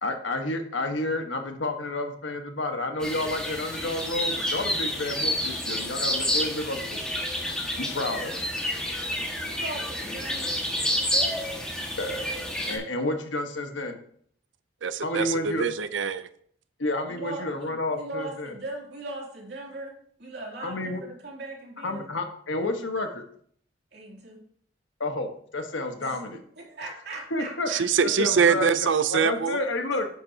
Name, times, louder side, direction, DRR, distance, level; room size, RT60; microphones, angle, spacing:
voice 1, 0.0-7.1 7.8-8.4 12.0-12.3 12.7-14.0 15.0-15.6 16.8-18.5 20.6-21.0 21.8-23.2 25.0-26.4 27.3-27.7 28.0-28.7 29.1-30.1, left 2 dB, 85° left, 5 dB, 1.3 m, -30 dB
sound 1, 3.0-12.8, equal, 5° left, 1.6 m, -29 dB
voice 2, 9.5-10.5 17.1-19.9 20.2-22.1 23.9-24.4 26.0-27.8, right 2 dB, 60° right, -2 dB, 2.8 m, -39 dB
voice 3, 14.8-16.3 27.7-29.6, right 6 dB, 85° right, 14 dB, 0.5 m, -24 dB
10.0 x 8.7 x 2.8 m, 0.62 s
head